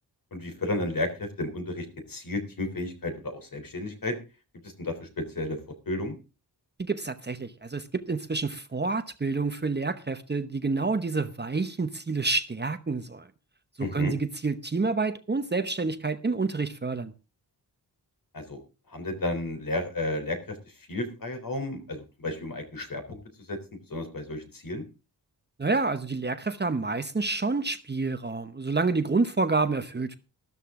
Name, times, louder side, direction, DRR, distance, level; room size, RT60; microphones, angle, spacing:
voice 1, 0.3-4.1 4.6-5.6 5.9-6.1 13.8-14.1 18.3-18.6 18.9-20.4 20.9-23.2 23.5-23.6 23.9-24.8, left 2 dB, 55° left, 3.7 m, -32 dB
voice 2, 6.8-13.3 13.8-17.1 25.6-30.2, right 3 dB, 25° right, 0.9 m, -28 dB
13.5 x 13.0 x 3.7 m
wide cardioid pair, 155°, 40 cm